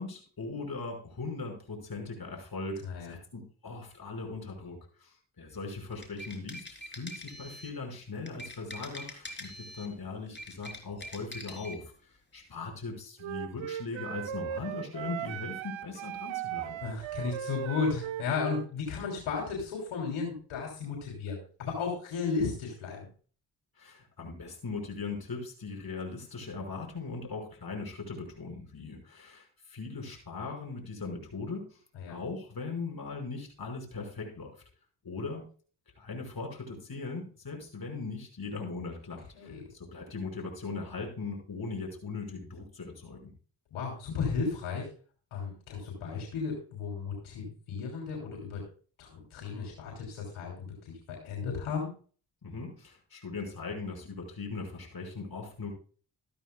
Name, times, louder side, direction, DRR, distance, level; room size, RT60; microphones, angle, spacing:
voice 1, 0.0-16.8 23.8-31.8 32.1-34.5 35.0-35.4 36.0-43.3 52.4-55.7, left 4 dB, 50° left, 1 dB, 5.4 m, -39 dB
voice 2, 2.8-3.1 16.8-23.1 31.9-32.2 39.3-39.6 43.7-44.9 45.3-48.6 49.0-51.9, left 5 dB, 85° left, -2 dB, 3.3 m, -34 dB
sound 1, 5.8-7.8 8.3-9.9 10.3-11.8, left 1 dB, 20° left, 3.7 m, -44 dB
Wind instrument woodwind instrument, 13.2-18.7, right 11 dB, 75° right, 0.7 m, -37 dB
14.0 x 12.5 x 2.3 m, 0.40 s
supercardioid pair, 40°, 48 cm